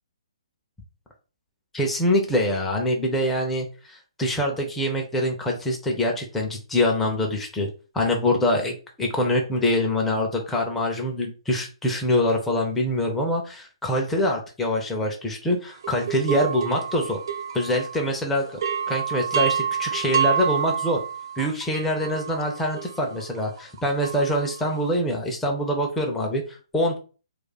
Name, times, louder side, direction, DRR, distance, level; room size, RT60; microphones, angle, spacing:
voice 1, 1.7-7.7 7.9-17.2 17.5-18.6 18.9-21.0 21.4-27.0, left 1 dB, 5° left, 0 dB, 0.5 m, -24 dB
sound 1, 15.8-18.2 18.5-24.8, right 7 dB, 50° right, 0.5 m, -28 dB
2.4 x 2.4 x 3.9 m, 0.35 s
figure-of-eight pair, 130°, 3 cm